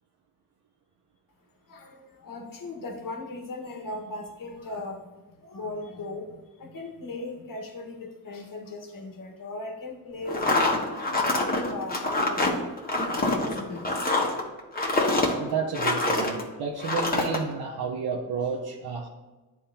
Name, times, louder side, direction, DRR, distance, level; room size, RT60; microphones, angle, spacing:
voice 1, 1.7-5.0 5.4-12.6 13.0-13.9, left 2 dB, 55° left, 2 dB, 1.4 m, -38 dB
sound 1, 10.3-16.4 16.8-17.4, left 2 dB, 25° left, 1.3 m, -25 dB
voice 2, 15.4-19.1, right 5 dB, 70° right, -1 dB, 0.9 m, -31 dB
9.7 x 3.6 x 2.8 m, 1.2 s
cardioid pair, 65°, 39 cm